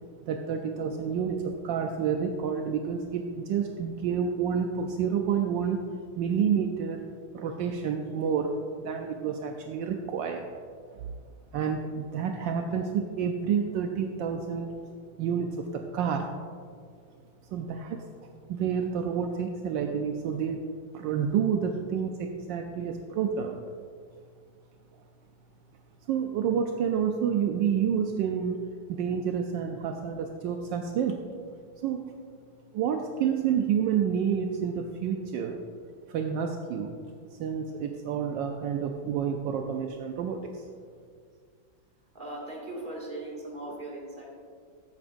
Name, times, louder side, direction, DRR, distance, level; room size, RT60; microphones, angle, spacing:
voice 1, 0.3-5.9 6.2-7.0 7.3-8.5 8.8-10.5 11.5-14.7 15.2-16.3 17.5-18.0 18.5-20.6 20.9-23.6 26.1-28.6 28.9-31.2 31.8-32.0 32.7-35.6 36.1-36.9 37.3-40.6, right 7 dB, 75° right, 4 dB, 1.3 m, -29 dB
voice 2, 42.1-44.3, right 1 dB, 25° right, -4 dB, 2.2 m, -38 dB
14.0 x 8.6 x 2.6 m, 2.1 s
omnidirectional pair, 2.1 m